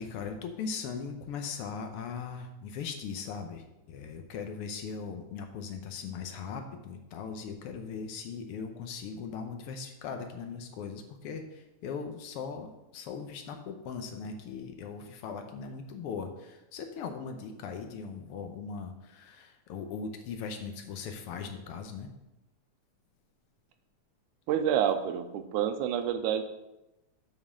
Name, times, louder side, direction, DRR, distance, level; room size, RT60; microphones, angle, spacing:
voice 1, 0.0-22.1, left 5 dB, 75° left, 5 dB, 1.3 m, -39 dB
voice 2, 24.5-26.4, right 9 dB, 85° right, 8 dB, 2.1 m, -28 dB
7.4 x 5.2 x 6.4 m, 0.94 s
omnidirectional pair, 3.5 m